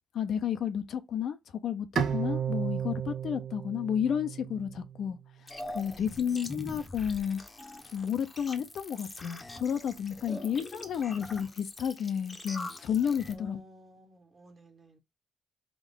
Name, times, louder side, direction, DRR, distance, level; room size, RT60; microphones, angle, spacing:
voice 1, 0.1-1.4 1.6-5.2 5.7-7.4 7.9-13.6, left 8 dB, 65° left, 0.6 m, -31 dB
Bowed string instrument, 2.0-5.2, right 8 dB, 65° right, 0.7 m, -33 dB
sound 1, 5.5-13.3, left 2 dB, 20° left, 0.8 m, -43 dB
voice 2, 5.8-6.5 10.3-10.5 13.3-15.0, equal, 35° right, 1.5 m, -53 dB
3.6 x 2.5 x 3.7 m
cardioid pair, 90°, 0 cm